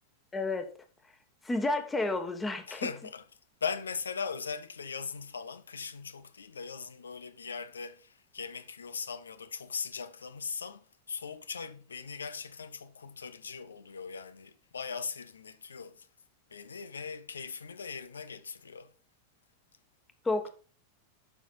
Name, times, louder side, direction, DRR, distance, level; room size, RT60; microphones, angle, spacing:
voice 1, 0.3-0.7 1.4-2.9 20.2-20.5, left 2 dB, 10° left, 1.3 m, -31 dB
voice 2, 2.7-3.2 3.6-16.1 16.5-18.9, left 5 dB, 70° left, 0.7 m, -39 dB
7.3 x 5.9 x 5.4 m
figure-of-eight pair, 90°, 0 cm